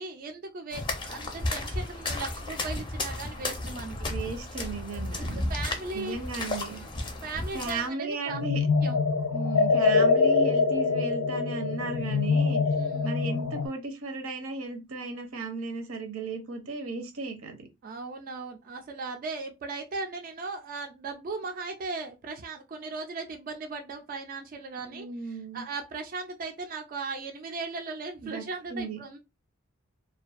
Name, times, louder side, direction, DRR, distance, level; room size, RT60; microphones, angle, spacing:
voice 1, 0.0-4.0 4.9-6.2 6.7-6.9 7.2-8.4 8.8-9.0 12.7-13.1 17.8-29.2, right 3 dB, 40° right, 0.3 m, -37 dB
sound 1, 0.7-7.9, left 2 dB, 20° left, 0.4 m, -33 dB
voice 2, 4.1-5.5 5.9-6.8 7.5-8.7 9.3-12.6 13.0-17.7 24.8-25.6 28.2-29.0, right 3 dB, 85° right, 0.7 m, -35 dB
sound 2, 8.3-13.7, left 4 dB, 90° left, 0.4 m, -24 dB
2.5 x 2.2 x 2.4 m
head